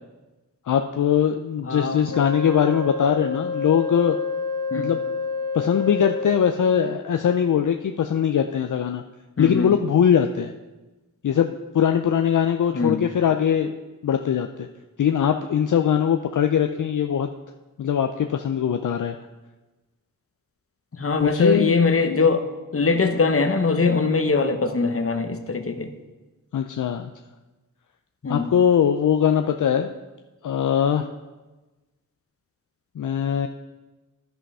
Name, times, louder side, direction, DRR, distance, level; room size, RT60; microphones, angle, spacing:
voice 1, 0.7-4.2 4.7-5.0 5.5-9.0 9.4-10.5 11.2-13.7 14.0-14.7 15.0-17.3 17.8-19.2 21.2-21.8 26.5-27.1 28.3-29.9 30.4-31.1 33.0-33.5, left 8 dB, 65° left, 6 dB, 0.5 m, -21 dB
voice 2, 1.6-2.1 4.7-4.9 9.4-9.7 12.7-13.0 20.9-22.5 22.7-25.9 28.2-28.5, left 4 dB, 40° left, 8 dB, 0.9 m, -22 dB
Wind instrument woodwind instrument, 2.1-6.7, left 3 dB, 80° left, 1.4 m, -29 dB
10.0 x 5.7 x 5.4 m, 1.2 s
cardioid pair, 45°, 33 cm